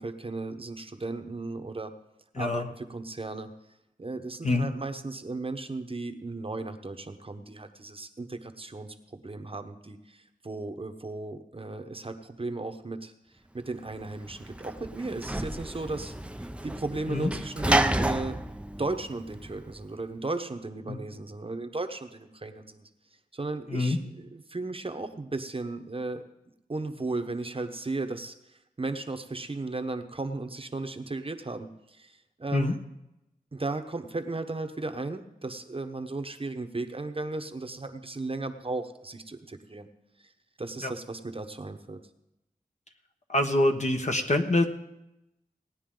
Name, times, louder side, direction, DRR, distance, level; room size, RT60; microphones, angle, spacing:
voice 1, 0.0-1.9 2.4-3.5 4.0-13.1 13.5-18.4 18.8-22.9 23.3-26.3 26.7-28.3 28.8-32.8 33.5-39.9 40.2-40.3 40.6-42.0, right 3 dB, 35° right, 7 dB, 1.0 m, -35 dB
voice 2, 2.3-2.7 4.4-4.7 17.1-17.3 20.9-21.0 23.7-24.0 32.5-32.7 40.8-40.9 43.3-44.6, left 2 dB, 50° left, 4 dB, 1.3 m, -25 dB
Sliding door / Slam, 13.9-19.8, right 1 dB, 5° right, 0.6 m, -31 dB
18.5 x 9.8 x 3.8 m, 0.89 s
wide cardioid pair, 60°, 15 cm